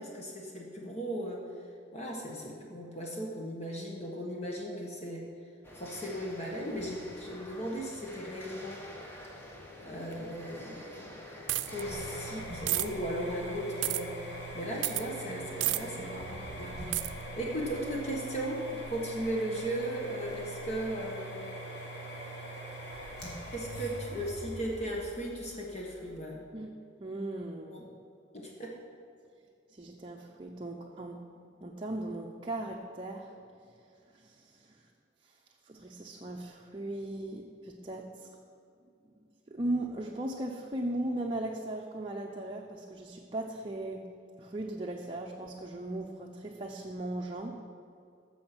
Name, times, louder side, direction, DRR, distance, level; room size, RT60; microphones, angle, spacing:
voice 1, 0.0-1.5 1.9-5.3 5.8-8.9 9.8-11.1 11.7-21.5 23.5-26.4 27.7-27.8 28.3-28.8, right 1 dB, 35° left, -1 dB, 1.5 m, -37 dB
sound 1, 5.6-12.4, left 1 dB, 15° left, 1.3 m, -48 dB
sound 2, 11.5-11.8 12.7-12.9 13.8-14.0 14.8-15.0 15.6-15.8 16.9-17.1, right 16 dB, 80° right, 0.5 m, -29 dB
sound 3, 11.7-26.2, right 1 dB, 65° left, 3.0 m, -42 dB
voice 2, 27.0-27.9 29.7-31.2 31.6-33.3 34.1-34.8 35.2-35.3 35.7-38.3 39.5-44.1 44.4-47.6, right 1 dB, 30° right, 0 dB, 0.7 m, -37 dB
15.0 x 6.4 x 6.1 m, 2.4 s
head